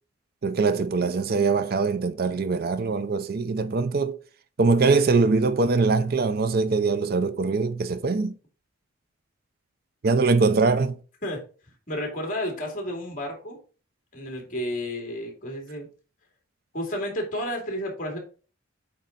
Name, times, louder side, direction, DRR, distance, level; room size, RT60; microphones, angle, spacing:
voice 1, 0.4-4.2 4.6-8.3 10.0-11.0, right 4 dB, 45° right, 0.5 m, -22 dB
voice 2, 11.9-13.6 14.1-15.9 16.7-18.2, equal, 40° left, 2.5 m, -31 dB
8.4 x 3.9 x 3.9 m
head